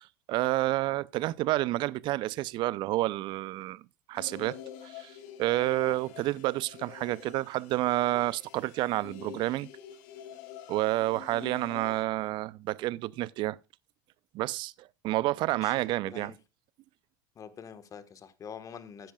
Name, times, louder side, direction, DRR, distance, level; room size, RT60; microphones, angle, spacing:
voice 1, 0.0-3.8 4.1-4.6 4.8-9.7 10.7-13.6 14.3-16.3, right 17 dB, 50° right, 0.5 m, -29 dB
sound 1, 4.1-12.0, left 9 dB, 65° left, 1.3 m, -46 dB
voice 2, 15.5-16.4 17.3-19.1, left 7 dB, 35° left, 1.4 m, -46 dB
13.5 x 10.0 x 2.3 m
hypercardioid pair, 80°, 10 cm